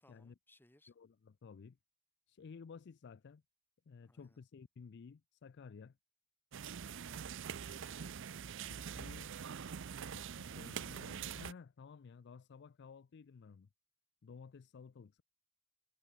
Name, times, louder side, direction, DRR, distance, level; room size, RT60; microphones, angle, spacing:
voice 1, 0.0-0.9 4.0-4.4 7.0-7.8, left 1 dB, 10° left, 1.5 m, -67 dB
voice 2, 1.0-1.8 2.3-3.4 3.9-6.0 8.7-9.3 10.1-13.7 14.2-15.2, left 5 dB, 55° left, 0.4 m, -54 dB
sound 1, 6.5-11.5, right 7 dB, 60° right, 0.6 m, -44 dB
head